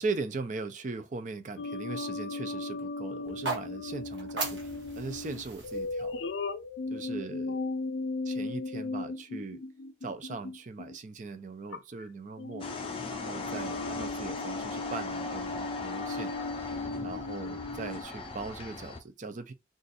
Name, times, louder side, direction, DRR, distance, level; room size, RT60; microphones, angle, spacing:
voice 1, 0.0-6.3 6.9-7.6 8.2-9.6 10.0-12.7 13.1-16.3 17.0-19.5, right 3 dB, 40° right, 0.5 m, -39 dB
sound 1, 1.6-11.0 11.7-12.0 12.4-18.0, left 3 dB, 85° left, 0.4 m, -37 dB
sound 2, 3.2-7.4, right 3 dB, 80° right, 1.2 m, -39 dB
sound 3, 12.6-19.0, left 3 dB, 30° left, 0.5 m, -39 dB
2.5 x 2.5 x 3.9 m
head